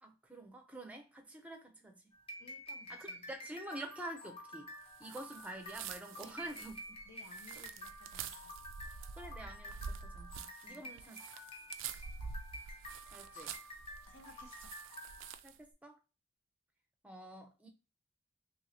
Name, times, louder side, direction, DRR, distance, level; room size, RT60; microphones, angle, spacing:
voice 1, 0.0-2.0 2.9-4.7 5.0-6.7 7.6-7.7 9.2-11.2 13.1-13.5 15.4-16.0 17.0-17.7, right 1 dB, 5° right, 0.6 m, -48 dB
sound 1, 2.1-15.3, equal, 30° left, 0.6 m, -50 dB
voice 2, 2.4-3.3 6.2-6.5 7.0-8.5 10.7-10.9 13.3-13.5 14.1-14.8, left 2 dB, 65° left, 0.8 m, -59 dB
sound 2, 5.0-15.6, right 6 dB, 70° right, 0.3 m, -47 dB
3.0 x 2.6 x 2.9 m
head